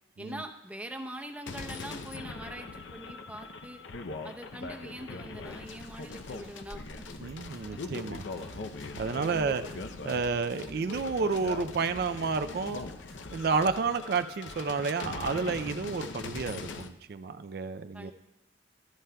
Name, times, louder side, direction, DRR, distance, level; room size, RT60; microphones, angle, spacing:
voice 1, 0.2-3.8 4.2-7.1 9.3-9.8 17.9-18.1, right 1 dB, 5° right, 4 dB, 0.7 m, -43 dB
sound 1, 1.5-16.9, left 3 dB, 80° left, 0.6 m, -41 dB
Hands, 5.3-13.7, equal, 80° right, 1.7 m, -54 dB
sound 2, 7.1-13.8, equal, 55° left, 0.9 m, -49 dB
voice 2, 7.2-8.2 9.0-9.6 10.0-12.8 13.3-18.1, right 4 dB, 55° right, 10 dB, 0.4 m, -30 dB
14.5 x 13.0 x 2.3 m, 0.97 s
head